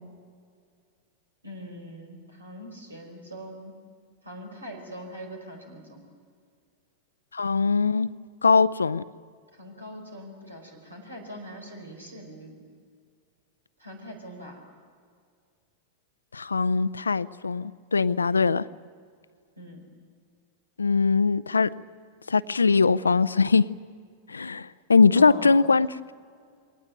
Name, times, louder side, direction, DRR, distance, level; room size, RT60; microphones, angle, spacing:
voice 1, 1.4-3.7 4.2-6.0 9.5-12.6 13.8-14.6 19.6-19.9 25.1-25.5, equal, 80° right, 4.6 m, -42 dB
voice 2, 7.3-8.1 8.4-9.0 16.3-18.6 20.8-21.7 22.3-23.7 24.3-25.9, left 4 dB, 75° left, 0.5 m, -21 dB
23.0 x 18.5 x 9.1 m
figure-of-eight pair, 90°, 0 cm